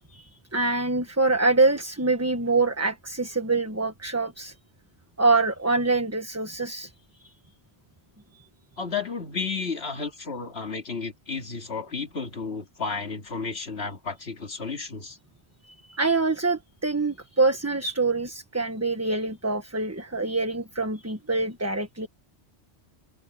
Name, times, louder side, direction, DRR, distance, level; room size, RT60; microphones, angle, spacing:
voice 1, 0.1-4.5 5.2-6.9 7.2-7.3 8.3-8.5 15.6-22.1, right 3 dB, 15° right, 1.3 m, -25 dB
voice 2, 8.8-15.2, left 4 dB, 65° left, 2.6 m, -32 dB
omnidirectional pair, 1.2 m